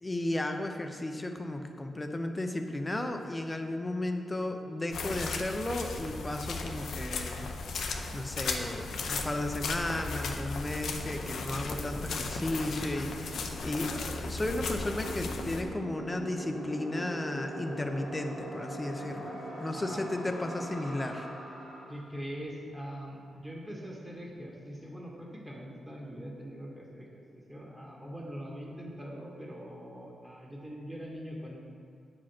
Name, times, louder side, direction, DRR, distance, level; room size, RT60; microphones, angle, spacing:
voice 1, 0.0-7.5 7.8-21.3, left 1 dB, 20° left, 5 dB, 0.7 m, -34 dB
sound 1, 4.9-15.6, left 4 dB, 80° left, 0.7 m, -36 dB
sound 2, 7.3-21.9, right 1 dB, 75° right, 2.3 m, -43 dB
voice 2, 21.9-31.6, equal, 15° right, -3 dB, 1.8 m, -42 dB
8.5 x 5.0 x 5.9 m, 2.2 s
cardioid pair, 90°, 0 cm